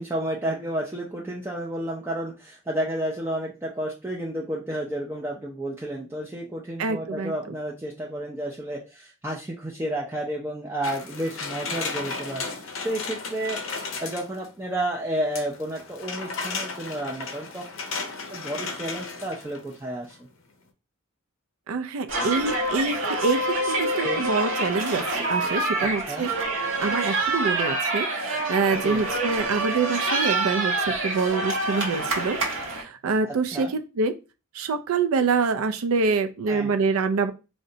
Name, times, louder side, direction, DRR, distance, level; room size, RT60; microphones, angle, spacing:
voice 1, 0.0-13.8 14.0-17.7 18.3-20.3 24.0-24.2 25.8-26.3 28.8-29.0 33.3-33.7 36.5-36.7, right 1 dB, 10° right, -3 dB, 0.3 m, -31 dB
voice 2, 6.8-7.3 21.7-26.3 26.8-34.1 34.5-37.3, right 4 dB, 80° right, 9 dB, 0.4 m, -26 dB
sound 1, 10.8-14.5 15.4-19.8 20.1-20.2, left 4 dB, 65° left, 0.5 m, -34 dB
sound 2, 22.1-32.8, right 2 dB, 60° right, 0.8 m, -26 dB
3.8 x 2.1 x 2.6 m, 0.30 s
head